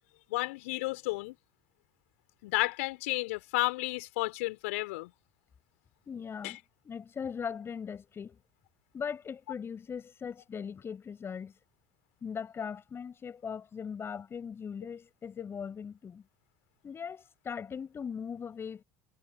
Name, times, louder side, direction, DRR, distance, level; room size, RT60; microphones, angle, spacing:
voice 1, 0.3-1.4 2.4-5.1 6.4-6.6, left 23 dB, 65° left, 3.1 m, -32 dB
voice 2, 6.1-6.6 6.8-8.4 8.9-11.5 12.2-16.2 16.8-18.8, left 7 dB, 30° left, 5.7 m, -39 dB
figure-of-eight pair, 70°, 8 cm